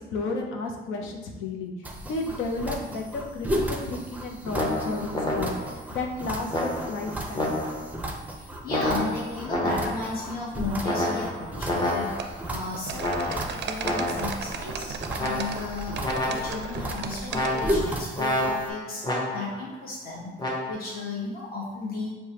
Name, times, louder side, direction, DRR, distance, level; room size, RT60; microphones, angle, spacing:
voice 1, 0.1-1.7 2.0-5.5 5.9-7.6, left 3 dB, 90° left, 2 dB, 0.6 m, -32 dB
sound 1, 1.8-18.7, equal, 10° right, 0.5 m, -35 dB
sound 2, 4.5-5.8 6.5-8.0 8.7-10.2 10.8-12.4 13.0-14.4 15.2-15.8 16.0-16.8 17.3-19.6 20.4-20.7, left 1 dB, 20° left, 0.8 m, -29 dB
voice 2, 8.4-22.1, left 3 dB, 50° left, -5 dB, 1.1 m, -35 dB
sound 3, 12.2-17.8, right 5 dB, 60° right, 0.4 m, -36 dB
4.7 x 2.2 x 2.9 m, 1.3 s
cardioid pair, 90°, 20 cm